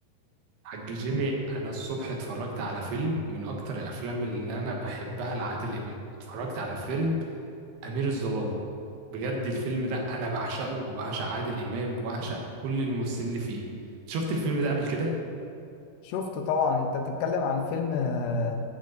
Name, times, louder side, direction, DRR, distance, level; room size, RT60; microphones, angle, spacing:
voice 1, 0.6-6.0 6.3-7.1 7.8-8.5 9.1-13.6 14.1-15.1, right 2 dB, 80° right, 0 dB, 3.2 m, -31 dB
voice 2, 16.0-18.6, left 4 dB, 90° left, 4 dB, 2.8 m, -28 dB
9.1 x 5.1 x 7.5 m, 2.6 s
omnidirectional pair, 4.7 m